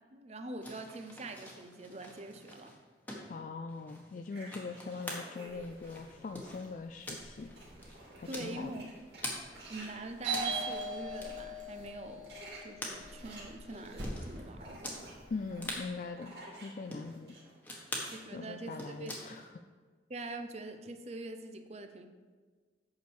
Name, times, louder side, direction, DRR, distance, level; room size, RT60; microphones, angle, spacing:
voice 1, 0.1-2.8 8.3-8.9 9.7-12.3 12.6-15.1 18.1-19.5 20.1-22.1, right 2 dB, 35° right, 7 dB, 0.6 m, -44 dB
sound 1, 0.6-9.4 9.8-14.4 14.8-15.0 15.3-15.4 15.6-15.9 16.5-17.1 17.6-18.1 18.5-19.5, left 1 dB, 10° left, 1.3 m, -45 dB
voice 2, 3.3-7.5 8.2-8.7 15.3-17.4 18.3-19.5, left 4 dB, 45° left, 7 dB, 0.3 m, -42 dB
sound 2, 4.3-6.6 7.0-11.4 12.0-17.5 17.8-18.8, right 2 dB, 60° right, 2.8 m, -53 dB
sound 3, 5.5-15.8, right 2 dB, 80° right, 2.4 m, -42 dB
8.4 x 6.2 x 4.7 m, 1.5 s
head